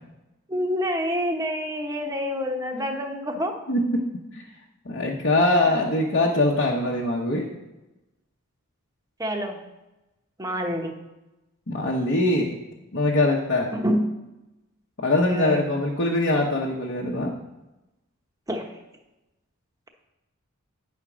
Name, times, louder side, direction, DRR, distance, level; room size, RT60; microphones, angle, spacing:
voice 1, 0.5-3.5 9.2-9.6 10.4-10.9 13.7-14.0 15.3-15.7 18.5-18.7, equal, 15° right, 3 dB, 0.9 m, -27 dB
voice 2, 3.7-4.1 4.3-4.4 4.8-7.5 11.7-12.5 12.9-13.7 15.0-17.3, left 2 dB, 50° left, -2 dB, 1.0 m, -22 dB
9.8 x 4.4 x 6.1 m, 1.0 s
head